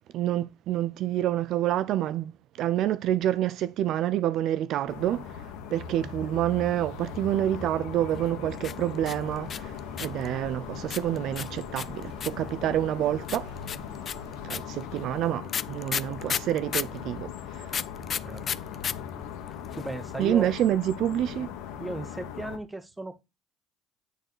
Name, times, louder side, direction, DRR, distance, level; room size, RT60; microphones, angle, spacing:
voice 1, 0.1-2.3 2.6-13.5 14.4-17.8 20.2-21.5, right 12 dB, 60° right, 0.4 m, -28 dB
sound 1, 4.9-22.6, left 8 dB, 85° left, 1.5 m, -39 dB
sound 2, 8.6-10.3 10.9-12.5 13.3-17.0 17.7-18.9 19.2-19.3 19.5-20.0, left 7 dB, 35° left, 0.4 m, -32 dB
sound 3, 9.2-14.5, right 2 dB, 90° right, 4.9 m, -51 dB
voice 2, 19.5-20.5 21.8-23.2, right 1 dB, 10° right, 1.0 m, -36 dB
9.2 x 3.8 x 6.5 m
cardioid pair, 110°, 0 cm